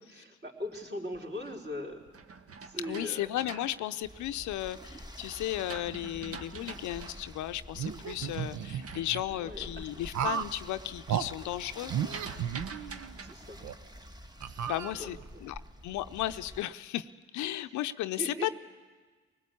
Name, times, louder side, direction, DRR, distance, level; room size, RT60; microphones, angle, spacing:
voice 1, 0.0-2.0 2.6-3.3 6.5-6.9 9.3-9.9 13.2-13.6 15.0-15.4 17.6-17.7 18.1-18.5, equal, 35° right, 0 dB, 4.2 m, -40 dB
sound 1, 0.9-4.7 5.2-10.1 10.4-10.8 11.1-13.3, right 5 dB, 50° right, 1.2 m, -47 dB
voice 2, 2.8-11.9 14.7-17.1 17.3-18.5, left 14 dB, 75° left, 11 dB, 0.6 m, -35 dB
sound 2, 4.0-16.6, equal, 15° right, 1.4 m, -48 dB
sound 3, 7.7-9.2 10.1-10.6 11.1-11.3 11.9-13.1 13.6-13.7 14.4-15.3, right 9 dB, 65° right, 0.8 m, -34 dB
20.5 x 19.5 x 8.5 m, 1.4 s
supercardioid pair, 55°, 30 cm